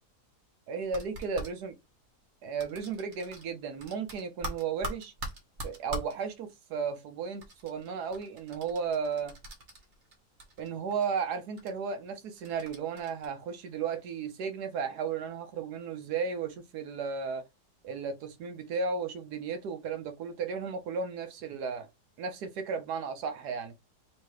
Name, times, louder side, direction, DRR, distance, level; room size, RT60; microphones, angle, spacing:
voice 1, 0.7-1.7 2.4-5.1 5.6-9.4 10.6-17.4 17.8-21.9 22.2-23.7, right 5 dB, 80° right, 1.3 m, -34 dB
sound 1, 0.8-1.5 2.6-3.5 3.8-6.1 7.4-10.1 10.4-11.0 11.6-11.7 12.4-13.3, right 1 dB, 50° right, 1.4 m, -41 dB
3.3 x 3.0 x 4.6 m
omnidirectional pair, 1.7 m